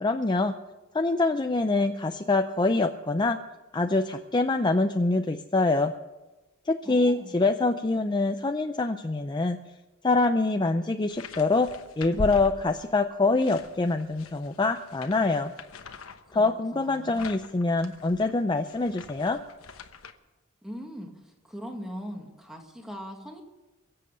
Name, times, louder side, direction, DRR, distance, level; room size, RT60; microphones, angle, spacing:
voice 1, 0.0-0.5 0.9-3.4 3.7-5.9 6.7-9.6 10.0-11.7 12.0-15.5 16.3-19.4, left 3 dB, 20° left, 7 dB, 0.5 m, -25 dB
voice 2, 6.9-7.3 16.3-17.3 20.6-23.4, equal, ahead, 2 dB, 1.9 m, -41 dB
sound 1, 11.1-13.0 13.4-20.1, left 3 dB, 90° left, 1.1 m, -42 dB
23.0 x 7.8 x 6.7 m, 1.1 s
head